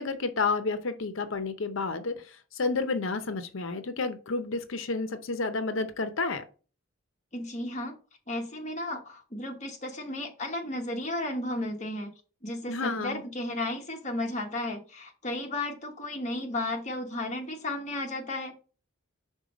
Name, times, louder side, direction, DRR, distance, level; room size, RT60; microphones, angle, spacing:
voice 1, 0.0-6.4 12.7-13.2, left 3 dB, 70° left, 0.7 m, -30 dB
voice 2, 7.3-8.0 8.3-12.1 12.4-18.5, left 1 dB, 35° left, 1.2 m, -34 dB
5.4 x 4.0 x 5.0 m
head